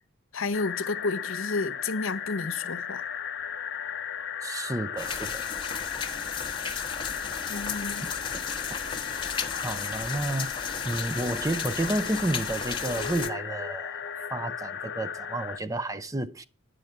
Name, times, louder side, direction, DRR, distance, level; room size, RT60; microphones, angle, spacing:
voice 1, 0.3-3.0 7.5-8.1, left 3 dB, 75° left, 0.9 m, -31 dB
sound 1, 0.5-15.6, left 7 dB, 50° left, 0.6 m, -36 dB
voice 2, 4.4-5.4 8.0-8.1 8.7-16.5, right 1 dB, 15° right, 0.5 m, -32 dB
sound 2, 5.0-13.3, left 6 dB, 20° left, 1.0 m, -34 dB
10.5 x 6.3 x 7.9 m
head